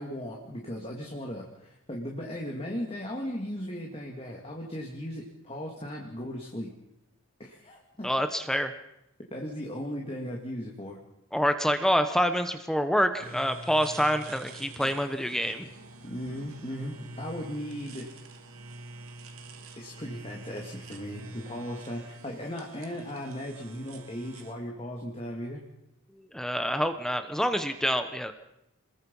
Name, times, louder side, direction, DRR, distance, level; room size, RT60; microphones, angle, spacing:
voice 1, 0.0-6.7 7.4-8.1 9.3-11.0 14.8-15.0 16.0-18.1 19.8-25.6, equal, 25° left, -1 dB, 2.6 m, -37 dB
voice 2, 8.0-8.7 11.3-15.7 26.2-28.3, equal, ahead, 8 dB, 1.0 m, -27 dB
sound 1, 13.2-24.5, right 2 dB, 75° right, 2.8 m, -46 dB
28.0 x 21.5 x 5.6 m, 0.85 s
head